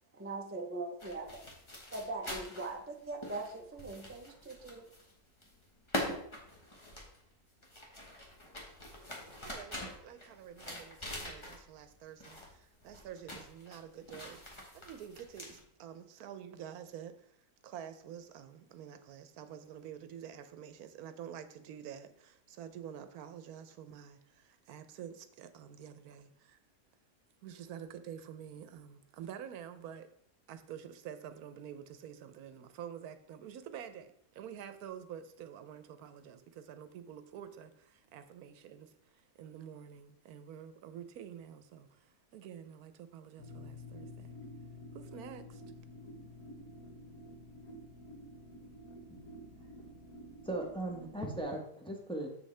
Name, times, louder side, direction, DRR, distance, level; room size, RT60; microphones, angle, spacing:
voice 1, 0.1-1.4 1.9-4.9, right 3 dB, 20° right, 0.3 m, -41 dB
sound 1, 1.0-5.1 5.4-11.9 12.2-12.6 12.8-15.6, left 1 dB, 20° left, 1.2 m, -44 dB
voice 2, 9.4-14.4 14.7-17.4 17.6-26.6 27.4-30.1 30.5-38.9 39.4-44.3 44.9-45.6, right 9 dB, 85° right, 1.2 m, -48 dB
sound 2, 43.4-51.4, left 1 dB, 75° left, 1.4 m, -50 dB
voice 3, 50.4-52.3, right 1 dB, 5° left, 0.9 m, -38 dB
6.9 x 6.3 x 3.3 m
omnidirectional pair, 1.5 m